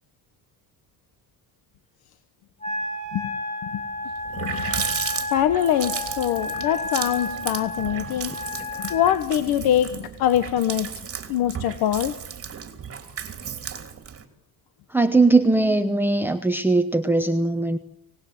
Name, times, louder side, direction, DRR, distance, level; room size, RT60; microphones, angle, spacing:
Wind instrument woodwind instrument, 2.6-9.2, left 2 dB, 20° left, 7.0 m, -32 dB
Water tap faucet, 3.8-3.9 4.1-14.2, right 7 dB, 40° right, 3.1 m, -34 dB
voice 1, 5.3-8.4 8.8-10.9 11.3-12.2, left 11 dB, 85° left, 11 dB, 1.3 m, -23 dB
voice 2, 14.9-17.8, right 2 dB, 5° right, 6 dB, 1.0 m, -20 dB
25.5 x 19.5 x 7.9 m, 0.74 s
cardioid pair, 135°, 37 cm